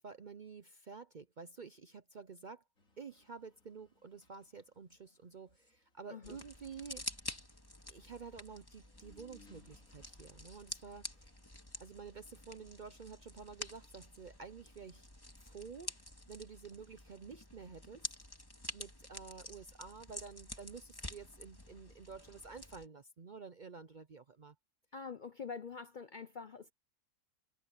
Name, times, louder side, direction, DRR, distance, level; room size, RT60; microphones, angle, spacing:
voice 1, 0.0-2.6 3.0-7.1 7.9-11.3 11.8-15.1 15.4-18.2 18.7-24.5, right 5 dB, 45° right, 0.6 m, -50 dB
sound 1, 2.8-14.6, left 3 dB, 70° left, 5.9 m, -70 dB
sound 2, 6.2-22.9, left 1 dB, 15° left, 2.6 m, -49 dB
voice 2, 24.9-26.7, left 5 dB, 50° left, 0.6 m, -45 dB
omnidirectional pair, 1.5 m